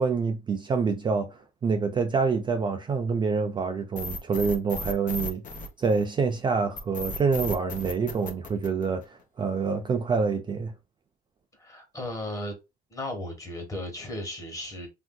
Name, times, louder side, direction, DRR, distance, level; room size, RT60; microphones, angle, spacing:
voice 1, 0.0-10.7, right 5 dB, 30° right, 0.3 m, -27 dB
sound 1, 4.0-6.2 6.8-9.2, left 1 dB, 50° left, 0.8 m, -35 dB
voice 2, 11.5-12.6 12.9-14.9, left 1 dB, 20° left, 1.2 m, -35 dB
3.3 x 2.6 x 2.2 m
cardioid pair, 110°, 17 cm